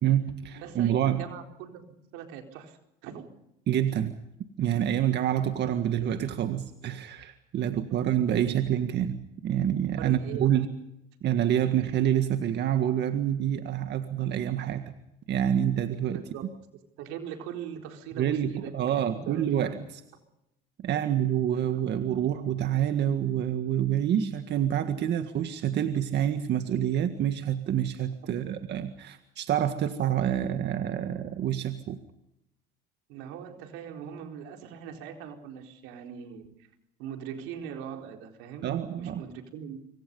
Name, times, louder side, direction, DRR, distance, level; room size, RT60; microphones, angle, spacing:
voice 1, 0.0-1.2 3.7-4.1 4.6-10.7 11.2-14.9 15.3-16.2 18.2-20.0 20.8-32.0 38.6-39.2, right 10 dB, 55° right, 8 dB, 1.8 m, -27 dB
voice 2, 0.6-1.8 2.1-3.3 7.6-8.0 10.0-10.5 16.1-16.4 17.0-19.5 28.2-28.5 33.1-36.7 37.0-38.7 39.0-39.8, right 8 dB, 85° right, 4 dB, 4.3 m, -41 dB
26.0 x 25.5 x 5.5 m, 0.86 s
cardioid pair, 105°, 21 cm